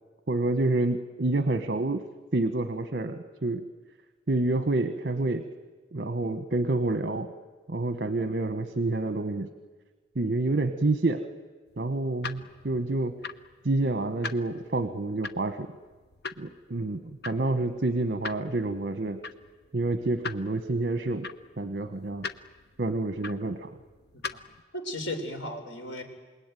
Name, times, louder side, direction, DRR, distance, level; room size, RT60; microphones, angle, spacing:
voice 1, 0.3-2.1 2.3-3.6 4.3-5.5 5.9-7.3 7.7-9.5 10.1-11.3 11.8-13.1 13.6-15.7 16.4-19.2 19.7-21.3 21.6-22.3 22.8-23.7, right 2 dB, 55° right, 10 dB, 1.1 m, -28 dB
sound 1, 11.7-24.6, left 4 dB, 60° left, 1.0 m, -43 dB
voice 2, 24.7-26.0, left 1 dB, 85° left, 6 dB, 3.9 m, -36 dB
27.5 x 21.0 x 9.1 m, 1.3 s
head